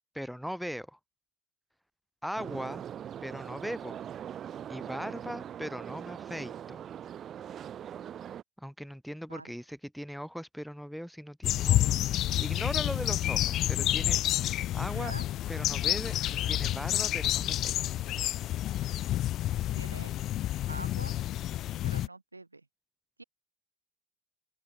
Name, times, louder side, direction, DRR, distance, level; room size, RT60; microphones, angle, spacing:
voice 1, 0.1-1.0 2.2-2.8 3.2-4.0 4.7-6.8 8.6-12.0 12.4-15.1 15.5-17.7, equal, ahead, 4.0 m, -39 dB
sound 1, 2.4-8.4, right 9 dB, 40° right, 5.8 m, -41 dB
sound 2, 11.4-22.1, left 13 dB, 50° left, 0.4 m, -29 dB
voice 2, 14.8-15.3 19.7-20.1 20.7-21.2 21.8-22.7 23.2-23.3, right 3 dB, 90° right, 3.7 m, -45 dB
open air
figure-of-eight pair, 60°, 0 cm